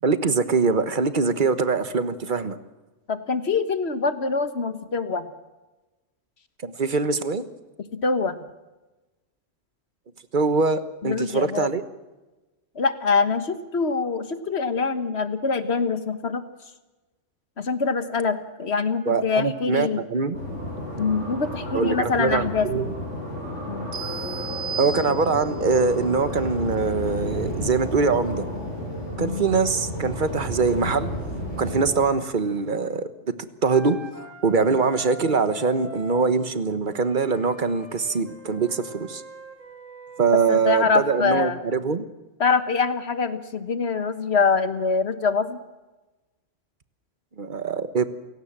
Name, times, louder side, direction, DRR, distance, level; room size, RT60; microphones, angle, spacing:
voice 1, 0.0-2.6 6.6-7.4 10.3-11.8 19.1-20.4 21.7-22.9 24.8-28.4 29.2-31.1 31.6-33.1 33.6-39.2 40.2-42.1 47.4-48.0, right 4 dB, 40° right, 11 dB, 1.3 m, -23 dB
voice 2, 3.1-5.3 7.9-8.4 11.0-11.7 12.7-16.4 17.6-20.0 21.0-22.8 23.7-23.9 29.2-29.6 40.5-41.6 42.4-45.6, left 4 dB, 60° left, 10 dB, 1.6 m, -24 dB
sound 1, 20.3-31.9, equal, 75° left, 8.4 m, -32 dB
sound 2, 23.9-25.7, right 5 dB, 70° right, 2.5 m, -34 dB
Wind instrument woodwind instrument, 33.7-36.3 36.9-41.5, equal, 90° right, 3.1 m, -43 dB
29.0 x 17.0 x 7.5 m, 1.1 s
omnidirectional pair, 1.3 m